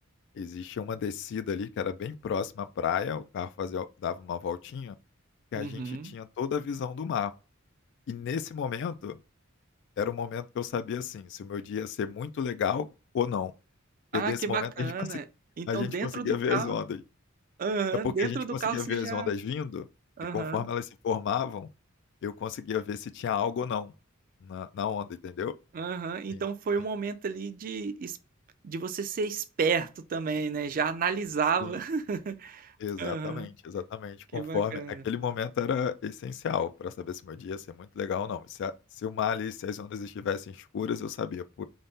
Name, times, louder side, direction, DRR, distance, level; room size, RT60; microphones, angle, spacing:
voice 1, 0.4-4.9 5.5-7.3 8.1-9.2 10.0-12.9 13.1-13.5 14.1-15.2 15.7-17.0 18.0-19.9 20.3-21.7 22.2-23.9 24.4-25.5 26.3-26.4 31.6-31.7 32.8-41.6, left 7 dB, 60° left, 0.3 m, -32 dB
voice 2, 5.6-6.1 14.1-15.2 15.6-16.8 17.6-19.3 20.2-20.7 25.7-28.2 28.6-32.7 33.0-33.5 34.3-35.0, right 5 dB, 40° right, 0.4 m, -31 dB
3.9 x 2.1 x 3.4 m
head